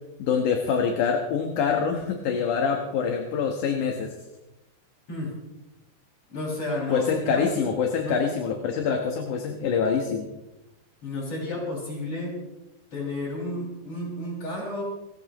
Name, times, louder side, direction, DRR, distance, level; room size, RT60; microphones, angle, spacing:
voice 1, 0.2-4.1 6.9-10.3, left 6 dB, 65° left, 3 dB, 2.6 m, -25 dB
voice 2, 6.3-7.4 8.0-8.2 11.0-12.4 12.9-14.8, left 1 dB, 40° left, -3 dB, 6.8 m, -31 dB
30.0 x 14.0 x 3.0 m, 0.96 s
omnidirectional pair, 4.0 m